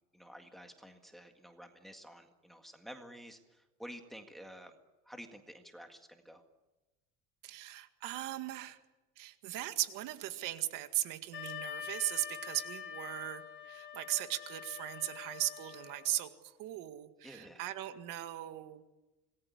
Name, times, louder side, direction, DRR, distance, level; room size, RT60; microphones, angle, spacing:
voice 1, 0.1-4.8 5.1-6.4 17.2-17.6, equal, ahead, 5 dB, 1.9 m, -51 dB
voice 2, 7.4-8.8 9.2-18.8, right 15 dB, 70° right, 9 dB, 2.0 m, -38 dB
Wind instrument woodwind instrument, 11.3-16.2, left 8 dB, 35° left, 4.9 m, -45 dB
26.5 x 20.0 x 9.6 m, 1.1 s
cardioid pair, 170°, 33 cm